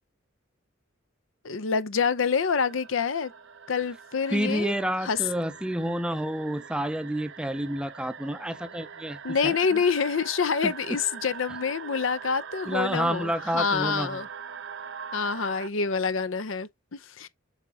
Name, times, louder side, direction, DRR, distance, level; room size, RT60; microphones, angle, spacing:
voice 1, 1.4-3.3 3.7-4.8 5.0-5.2 9.2-14.3 15.1-17.3, left 5 dB, 75° left, 0.7 m, -27 dB
sound 1, 2.4-15.7, right 7 dB, 65° right, 0.9 m, -42 dB
voice 2, 4.3-9.6 10.6-10.7 12.7-14.2, equal, 5° right, 0.5 m, -29 dB
7.3 x 4.9 x 2.8 m
head